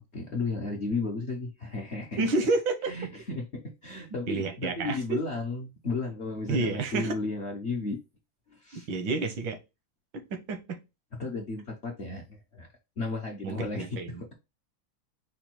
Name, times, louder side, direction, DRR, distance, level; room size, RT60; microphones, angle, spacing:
voice 1, 0.0-2.3 2.9-8.0 8.5-8.9 11.1-12.7 13.0-14.3, left 3 dB, 55° left, 0.7 m, -34 dB
voice 2, 2.2-2.9 4.3-5.0 6.5-7.1 8.7-9.6 10.1-10.8 13.4-14.3, right 3 dB, 80° right, 1.7 m, -29 dB
5.1 x 2.3 x 4.4 m
omnidirectional pair, 2.1 m